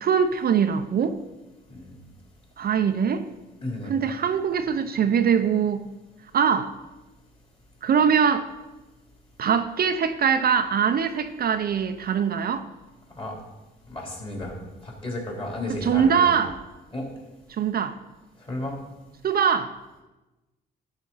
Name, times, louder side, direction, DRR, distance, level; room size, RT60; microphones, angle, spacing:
voice 1, 0.0-1.2 2.6-3.3 3.9-5.8 6.3-6.7 7.8-8.5 9.4-12.7 15.7-16.6 17.6-17.9 19.2-19.8, right 7 dB, 50° right, 9 dB, 0.6 m, -22 dB
voice 2, 3.6-3.9 13.1-13.4 13.9-14.5 14.8-16.3 16.9-17.1 18.5-18.8, left 1 dB, 30° left, -2 dB, 3.5 m, -33 dB
12.0 x 5.2 x 5.5 m, 1.1 s
cardioid pair, 90°, 20 cm